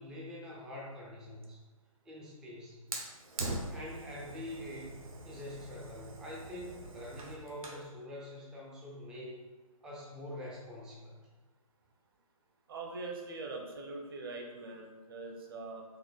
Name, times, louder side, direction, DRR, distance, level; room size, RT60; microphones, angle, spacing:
voice 1, 0.0-1.6 2.1-2.8 3.7-9.4 9.8-11.2, left 1 dB, 5° right, -4 dB, 0.4 m, -45 dB
Fire, 2.9-7.9, right 2 dB, 70° right, 1.0 m, -42 dB
voice 2, 12.7-15.8, right 3 dB, 40° right, 2 dB, 0.8 m, -42 dB
4.6 x 2.9 x 3.9 m, 1.3 s
hypercardioid pair, 150°, 19 cm